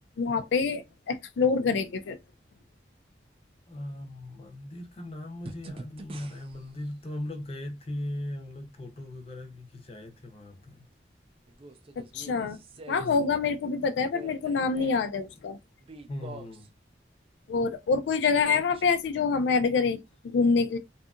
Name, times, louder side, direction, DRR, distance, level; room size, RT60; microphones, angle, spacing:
voice 1, 0.2-2.2 12.0-12.6 12.9-15.6 17.5-20.0 20.2-20.8, left 5 dB, 90° left, 0.3 m, -26 dB
voice 2, 3.7-10.9 13.0-13.4 16.1-16.7, left 1 dB, 35° left, 0.6 m, -39 dB
sound 1, 5.4-6.7 8.5-8.6 11.5-13.2 14.0-15.0 15.8-16.7 18.2-19.0 19.6-19.7, right 2 dB, 35° right, 0.3 m, -45 dB
2.7 x 2.4 x 2.4 m
head